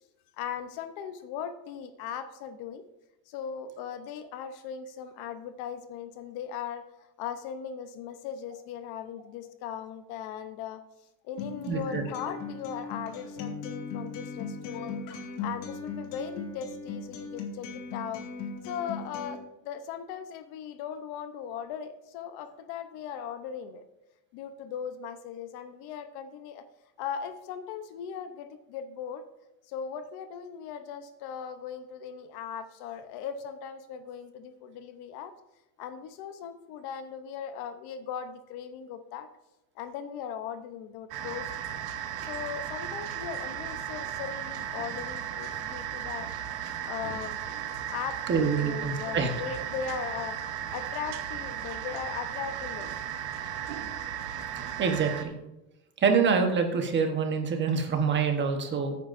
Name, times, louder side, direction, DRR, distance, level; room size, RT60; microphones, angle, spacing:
voice 1, 0.4-2.8 3.3-10.8 11.2-15.0 15.4-18.3 18.6-23.8 24.3-26.6 27.0-29.2 29.6-35.3 35.8-39.3 39.8-41.7 42.2-46.3 46.8-47.4 47.9-50.4 50.7-53.0, left 8 dB, 50° left, 10 dB, 0.8 m, -38 dB
Acoustic guitar, 11.4-19.4, left 4 dB, 65° left, 2.2 m, -38 dB
voice 2, 11.7-12.0 48.3-49.3 54.6-55.3 56.0-59.0, right 5 dB, 20° right, 5 dB, 1.1 m, -26 dB
sound 1, 41.1-55.2, right 9 dB, 50° right, 1.0 m, -36 dB
14.5 x 9.2 x 2.6 m, 0.96 s
cardioid pair, 155°, 50 cm